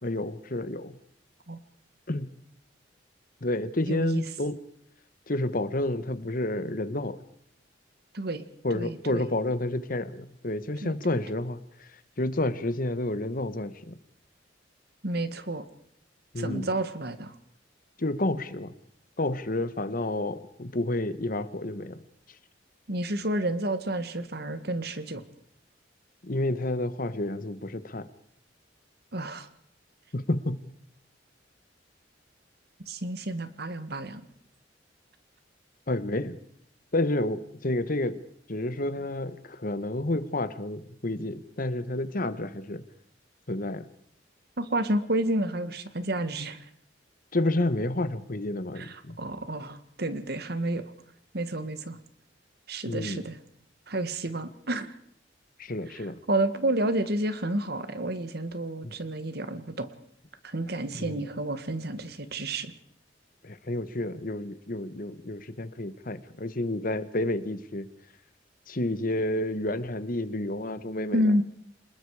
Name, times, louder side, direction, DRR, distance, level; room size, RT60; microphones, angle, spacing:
voice 1, 0.0-1.0 2.1-2.3 3.4-4.6 5.3-7.2 8.6-14.0 16.3-16.7 18.0-18.7 19.2-22.0 26.2-28.1 30.1-30.6 35.9-36.4 36.9-38.2 38.5-42.8 43.5-43.9 47.3-49.2 52.9-53.2 55.6-56.2 58.8-58.9 60.9-61.2 63.4-67.9 68.7-71.3, left 1 dB, 50° left, 13 dB, 1.4 m, -30 dB
voice 2, 3.9-4.2 8.1-8.4 8.7-9.2 10.8-11.2 15.0-15.6 16.4-17.3 22.9-25.2 29.1-29.5 32.9-34.2 44.6-46.6 48.8-50.8 51.3-52.0 52.7-53.4 53.9-54.9 56.3-59.9 60.4-62.7 71.1-71.4, right 1 dB, 60° right, 11 dB, 1.8 m, -30 dB
27.5 x 20.5 x 4.9 m, 0.68 s
head